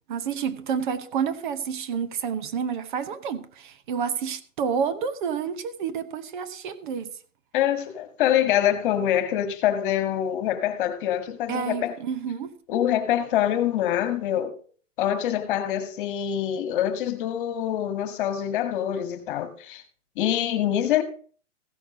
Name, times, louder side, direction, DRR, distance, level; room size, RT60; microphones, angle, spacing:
voice 1, 0.1-7.1 11.5-12.5, right 7 dB, 40° right, 0.9 m, -29 dB
voice 2, 7.5-11.9 12.7-14.5 15.0-19.8 20.2-21.0, left 11 dB, 40° left, 1.7 m, -25 dB
15.5 x 6.4 x 4.9 m
hypercardioid pair, 165°, 39 cm